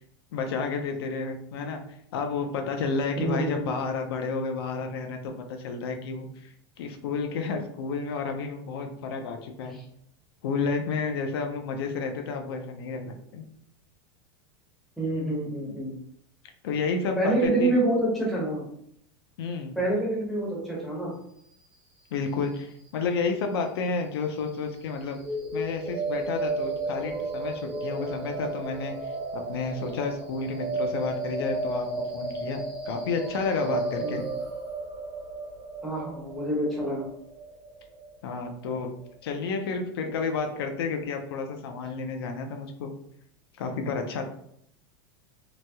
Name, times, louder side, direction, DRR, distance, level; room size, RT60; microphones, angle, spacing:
voice 1, 0.3-1.8 2.1-9.8 10.4-13.5 16.6-17.8 19.4-19.8 22.1-25.2 25.5-34.2 38.2-38.9 39.2-42.9 43.6-44.2, left 4 dB, 90° left, 4 dB, 0.5 m, -31 dB
voice 2, 3.2-3.7 9.7-9.8 15.0-16.0 17.2-18.6 19.7-21.1 34.0-34.2 35.8-37.1, right 1 dB, ahead, -6 dB, 0.8 m, -27 dB
sound 1, 25.1-39.1, right 2 dB, 40° right, 0.9 m, -33 dB
2.9 x 2.8 x 2.2 m, 0.70 s
supercardioid pair, 170°, 13 cm